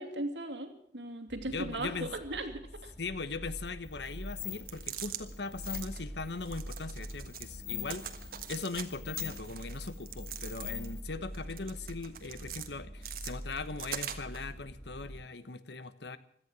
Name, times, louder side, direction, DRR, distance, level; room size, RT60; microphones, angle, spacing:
voice 1, 0.0-2.9, right 1 dB, 80° right, 7 dB, 2.7 m, -38 dB
sound 1, 1.3-15.2, equal, 15° left, 2.9 m, -46 dB
voice 2, 1.5-2.1 3.0-8.0 8.5-16.2, left 3 dB, 70° left, 14 dB, 1.1 m, -40 dB
sound 2, 3.7-11.0, left 9 dB, 35° left, 0.7 m, -45 dB
sound 3, 4.5-5.2 5.6-6.0 6.4-7.5 7.8-8.8 9.1-10.9 11.3-12.7 13.0-14.4, right 10 dB, 50° right, 1.5 m, -43 dB
17.0 x 13.0 x 6.2 m, 0.66 s
head